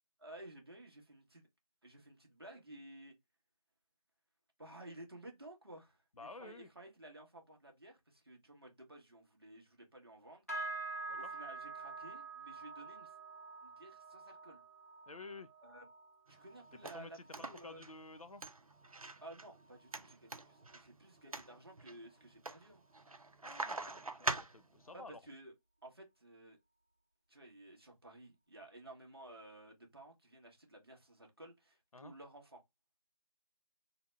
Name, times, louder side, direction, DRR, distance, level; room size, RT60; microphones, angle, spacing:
voice 1, 0.2-1.5 1.8-3.1 4.6-10.4 11.1-13.1 13.6-14.6 15.6-15.8 16.3-17.8 19.2-22.8 24.9-25.5 25.8-26.6 27.3-32.6, right 1 dB, 45° right, 1.0 m, -54 dB
voice 2, 6.2-6.7 11.1-11.3 15.1-15.5 16.7-18.4 23.4-25.2 31.9-32.1, left 3 dB, 75° left, 0.6 m, -52 dB
sound 1, 10.5-20.0 20.3-20.8 21.2-21.5 22.1-22.2, right 3 dB, 25° left, 0.7 m, -48 dB
sound 2, 16.3-25.0, right 3 dB, 75° right, 0.6 m, -45 dB
3.9 x 2.2 x 3.2 m
figure-of-eight pair, 175°, 18 cm